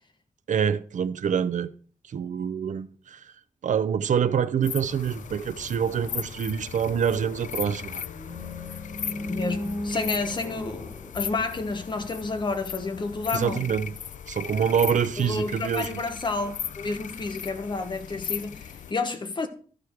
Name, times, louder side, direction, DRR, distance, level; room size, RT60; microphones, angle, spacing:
voice 1, 0.5-1.7 2.1-3.3 3.6-8.0 13.3-13.9 14.3-16.0, right 7 dB, 75° right, 0.6 m, -26 dB
sound 1, 4.6-18.9, left 8 dB, 80° left, 0.5 m, -37 dB
sound 2, 7.9-12.1, left 1 dB, 10° left, 1.7 m, -36 dB
voice 2, 9.3-13.7 15.2-19.5, left 3 dB, 35° left, 1.2 m, -30 dB
12.5 x 5.0 x 4.6 m
wide cardioid pair, 145°, 13 cm